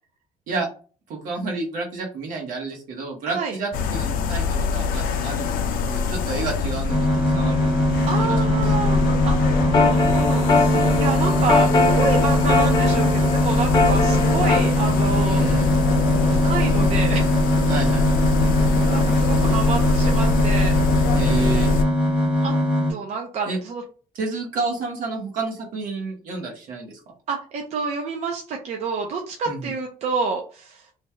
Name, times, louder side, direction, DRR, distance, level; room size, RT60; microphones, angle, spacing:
voice 1, 1.1-5.6 5.8-7.7 8.2-8.7 15.2-15.8 17.7-18.3 21.1-21.7 23.5-23.6 24.1-27.0 29.4-29.7, right 3 dB, 65° right, 0 dB, 1.3 m, -30 dB
sound 1, 3.7-21.8, left 4 dB, 70° left, 0.5 m, -24 dB
sound 2, 6.9-22.9, left 1 dB, 5° right, 1.1 m, -21 dB
voice 2, 8.1-15.4 16.3-17.3 18.9-20.8 22.4-22.5 22.9-23.8 27.3-30.8, right 5 dB, 50° right, 1 dB, 0.6 m, -28 dB
sound 3, 9.5-14.6, left 3 dB, 30° left, 0.7 m, -22 dB
3.2 x 2.3 x 4.2 m, 0.38 s
cardioid pair, 170°, 15 cm